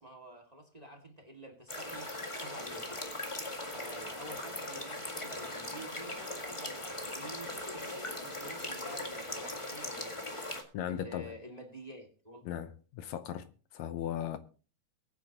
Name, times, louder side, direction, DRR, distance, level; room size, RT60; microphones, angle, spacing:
voice 1, 0.0-2.1 2.4-3.0 3.7-10.3 10.9-12.5, right 1 dB, 15° right, 1.5 m, -49 dB
sound 1, 1.7-10.6, left 1 dB, 15° left, 1.1 m, -40 dB
voice 2, 10.7-11.3 12.5-13.5 13.7-14.4, left 10 dB, 70° left, 2.0 m, -37 dB
22.5 x 9.4 x 2.9 m
omnidirectional pair, 3.6 m